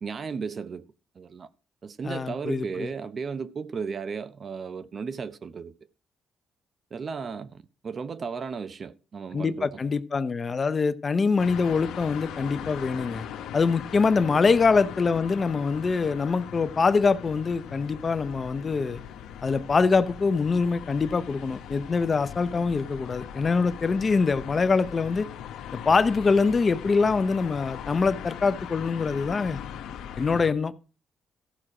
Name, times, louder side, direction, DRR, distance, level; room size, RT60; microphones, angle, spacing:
voice 1, 0.0-0.8 1.2-1.5 1.8-5.7 6.9-9.8 14.2-14.5, right 5 dB, 45° right, 0.8 m, -35 dB
voice 2, 2.0-2.9 9.3-13.3 13.5-19.0 19.4-25.3 25.7-29.6 30.2-30.7, left 4 dB, 35° left, 0.7 m, -24 dB
sound 1, 11.4-30.5, left 9 dB, 85° left, 1.3 m, -40 dB
14.5 x 6.4 x 4.9 m
cardioid pair, 90°, 0 cm